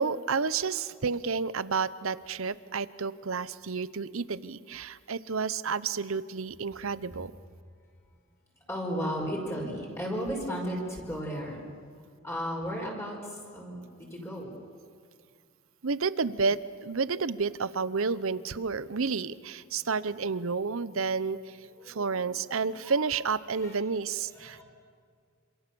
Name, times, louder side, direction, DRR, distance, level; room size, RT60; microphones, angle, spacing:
voice 1, 0.0-7.3 15.8-21.6 21.9-24.6, right 5 dB, 65° right, 16 dB, 0.8 m, -30 dB
voice 2, 8.7-11.6 12.2-14.5 21.8-22.2 22.6-23.0 23.5-23.7 24.3-24.6, equal, 15° left, -1 dB, 5.3 m, -35 dB
27.5 x 26.5 x 7.0 m, 2.1 s
head